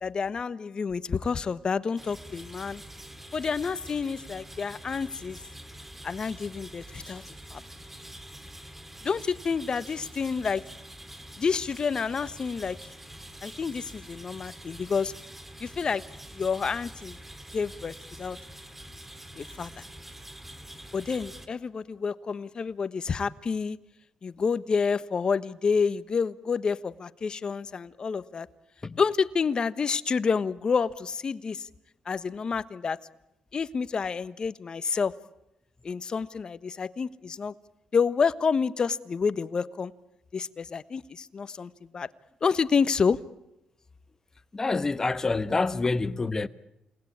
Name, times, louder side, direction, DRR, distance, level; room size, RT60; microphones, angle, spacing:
voice 1, 0.0-2.8 3.3-5.4 6.0-7.2 7.5-7.6 9.0-10.6 11.4-12.8 13.4-15.1 15.6-16.0 16.3-17.2 17.5-18.4 19.4-19.8 20.9-23.8 24.2-28.5 29.0-31.7 32.1-33.0 33.5-35.1 35.8-37.5 37.9-39.9 40.3-42.1 42.4-43.2, left 5 dB, 45° left, 1.2 m, -29 dB
sound 1, 2.0-21.5, right 1 dB, 10° right, 3.0 m, -45 dB
voice 2, 44.5-46.5, left 3 dB, 25° left, 1.2 m, -27 dB
29.5 x 19.0 x 8.7 m
cardioid pair, 80°, 2 cm